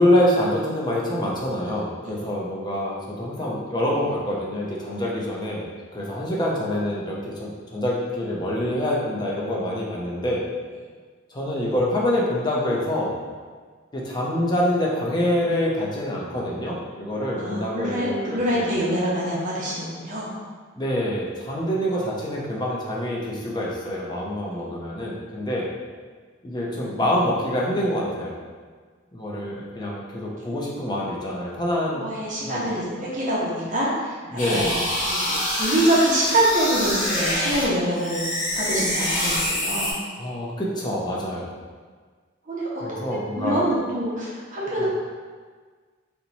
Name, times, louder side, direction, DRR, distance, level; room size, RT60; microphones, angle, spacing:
voice 1, 0.0-5.7 5.9-10.4 11.3-13.1 13.9-18.7 20.7-25.7 26.4-28.4 29.1-32.0 32.4-32.7 34.3-34.9 40.2-41.5 42.8-43.7 44.8-44.9, left 1 dB, 20° left, -4 dB, 0.5 m, -26 dB
voice 2, 17.3-20.3 30.4-30.5 32.0-34.2 34.5-34.7 35.1-39.9 42.5-42.7 43.3-44.9, right 1 dB, 40° right, -6 dB, 0.7 m, -25 dB
sound 1, 34.4-37.6 37.9-39.9, left 1 dB, 45° left, 1.0 m, -26 dB
2.9 x 2.2 x 3.9 m, 1.5 s
head